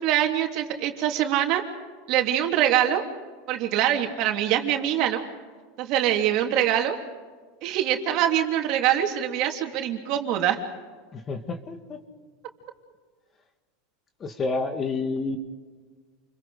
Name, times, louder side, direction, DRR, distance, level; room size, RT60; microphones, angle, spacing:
voice 1, 0.0-1.6 2.1-3.0 3.5-5.2 5.8-7.0 7.6-10.6, right 11 dB, 50° right, 3 dB, 3.1 m, -24 dB
voice 2, 11.1-12.0 14.2-15.4, left 3 dB, 25° left, 7 dB, 2.2 m, -29 dB
29.0 x 23.0 x 5.1 m, 1.5 s
supercardioid pair, 135°, 0 cm